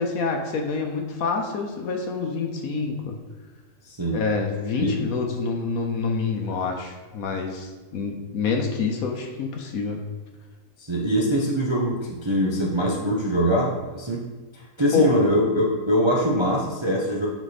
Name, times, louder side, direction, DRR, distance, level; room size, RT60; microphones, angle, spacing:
voice 1, 0.0-3.2 4.1-10.0 14.9-15.1, left 4 dB, 65° left, 3 dB, 1.2 m, -27 dB
voice 2, 3.8-4.2 4.8-4.9 10.8-14.2 14.5-17.3, equal, 30° right, -3 dB, 0.5 m, -23 dB
8.1 x 4.4 x 4.1 m, 1.3 s
omnidirectional pair, 1.7 m